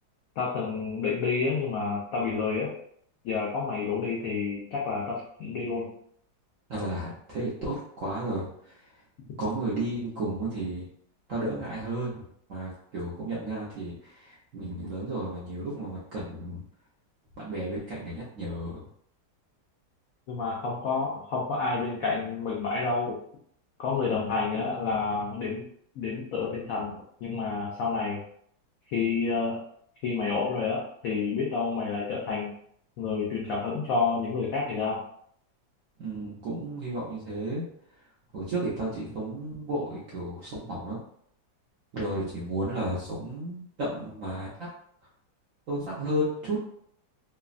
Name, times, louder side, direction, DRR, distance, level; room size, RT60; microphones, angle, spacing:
voice 1, 0.4-2.7 3.2-5.9 20.3-23.2 23.8-25.6 26.0-28.2 28.9-29.6 30.0-32.5 33.0-35.1, left 4 dB, 90° left, -4 dB, 0.7 m, -29 dB
voice 2, 6.7-8.9 9.4-10.9 11.3-12.2 12.5-16.6 17.4-18.9 36.0-37.7 38.3-41.0 41.9-44.7 45.7-46.6, right 1 dB, 70° right, -6 dB, 0.7 m, -33 dB
3.2 x 2.0 x 2.4 m, 0.66 s
omnidirectional pair, 2.1 m